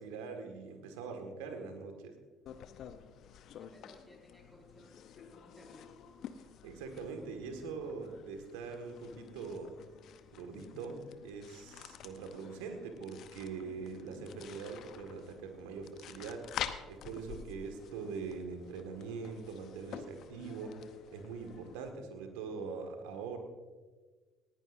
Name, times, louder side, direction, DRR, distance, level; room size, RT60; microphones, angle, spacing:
voice 1, 0.0-2.1 6.6-9.7 10.3-11.0 11.2-20.8 21.1-23.4, right 5 dB, 70° right, 5 dB, 1.8 m, -43 dB
sound 1, 2.5-21.9, left 9 dB, 55° left, 0.8 m, -49 dB
voice 2, 3.2-5.9, left 1 dB, ahead, -1 dB, 5.0 m, -59 dB
19.0 x 15.5 x 2.6 m, 1.4 s
figure-of-eight pair, 55°, 0 cm